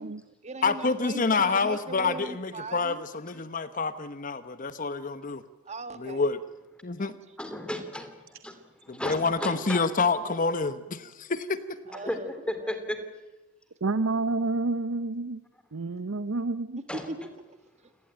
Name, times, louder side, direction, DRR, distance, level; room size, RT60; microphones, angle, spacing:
voice 1, 0.0-3.0 5.6-6.2 7.0-7.1 11.9-12.3 12.6-12.7 17.1-17.6 17.8-17.9, right 2 dB, 35° right, 10 dB, 1.5 m, -40 dB
voice 2, 0.6-5.4 6.0-6.4 6.8-7.2 8.9-11.8, left 4 dB, 40° left, 13 dB, 1.0 m, -28 dB
voice 3, 7.4-9.9 11.9-13.0 16.9-17.1, left 1 dB, 5° left, 8 dB, 2.6 m, -35 dB
voice 4, 13.8-15.4 15.7-16.8, right 3 dB, 80° right, 13 dB, 0.7 m, -29 dB
28.0 x 18.5 x 8.9 m, 1.1 s
head